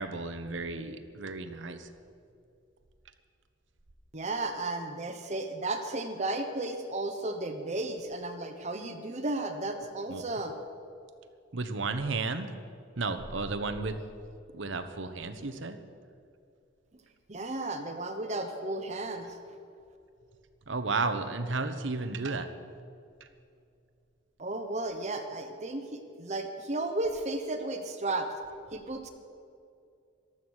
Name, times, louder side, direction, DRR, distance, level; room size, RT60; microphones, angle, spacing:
voice 1, 0.0-1.9 10.1-10.2 11.5-12.5 13.0-14.0 14.5-15.8 20.7-22.5, right 3 dB, 70° right, 9 dB, 1.1 m, -33 dB
voice 2, 4.1-10.6 17.3-19.4 24.4-28.3 28.7-29.1, right 2 dB, 35° right, 6 dB, 1.0 m, -34 dB
15.0 x 12.5 x 6.4 m, 2.4 s
head